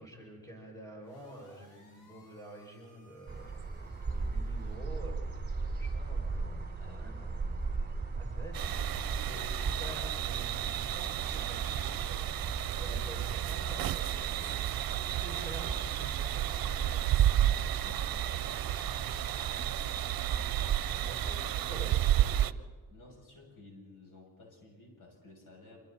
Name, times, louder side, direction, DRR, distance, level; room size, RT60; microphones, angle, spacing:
voice 1, 0.0-3.5 4.0-5.2 5.8-7.5 8.1-8.9 9.2-12.4 12.8-14.7 15.1-16.5 16.8-17.1 21.0-22.6, right 1 dB, 10° left, -1 dB, 6.9 m, -48 dB
sound 1, 1.0-4.8, left 3 dB, 85° left, 4.8 m, -62 dB
sound 2, 3.3-21.3, right 3 dB, 25° right, 3.0 m, -39 dB
sound 3, 8.5-22.5, right 12 dB, 70° right, 0.7 m, -32 dB
voice 2, 17.8-19.3 21.4-21.9 22.9-25.8, left 3 dB, 60° left, 0 dB, 7.6 m, -54 dB
27.0 x 25.0 x 4.4 m, 1.4 s
cardioid pair, 95°, 36 cm